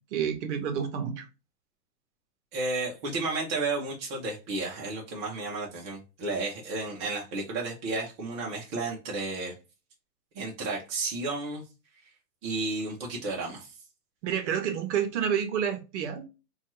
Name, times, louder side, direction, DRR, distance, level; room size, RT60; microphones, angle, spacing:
voice 1, 0.1-1.3 14.2-16.3, right 8 dB, 45° right, 0.8 m, -29 dB
voice 2, 2.5-9.5 10.3-11.6 12.4-13.7, right 3 dB, 20° right, 0.4 m, -32 dB
2.6 x 2.3 x 2.8 m
hypercardioid pair, 120°, 49 cm